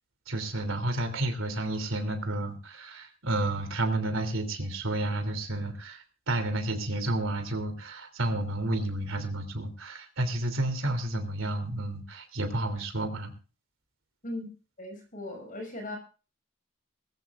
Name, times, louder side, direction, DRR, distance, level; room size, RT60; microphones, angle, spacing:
voice 1, 0.3-13.3, right 1 dB, 80° right, 7 dB, 3.0 m, -31 dB
voice 2, 14.8-16.0, left 1 dB, 45° left, 4 dB, 6.1 m, -38 dB
21.0 x 14.5 x 2.5 m, 0.34 s
head